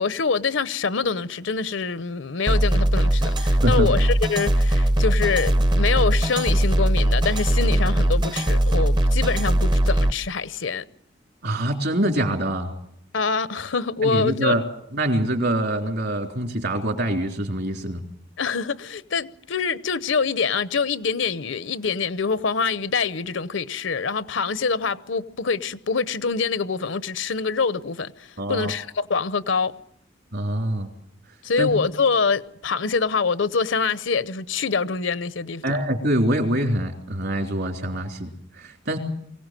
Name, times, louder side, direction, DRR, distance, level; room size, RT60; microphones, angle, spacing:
voice 1, 0.0-10.8 13.1-14.5 18.4-29.7 31.4-35.6, left 5 dB, 75° left, 0.8 m, -25 dB
sound 1, 2.5-10.1, right 1 dB, 25° right, 0.7 m, -20 dB
voice 2, 11.4-12.7 14.0-14.6 14.9-18.0 28.4-28.7 30.3-30.9 31.6-31.7 35.6-39.0, right 1 dB, 60° right, 3.5 m, -24 dB
23.5 x 17.0 x 7.6 m
head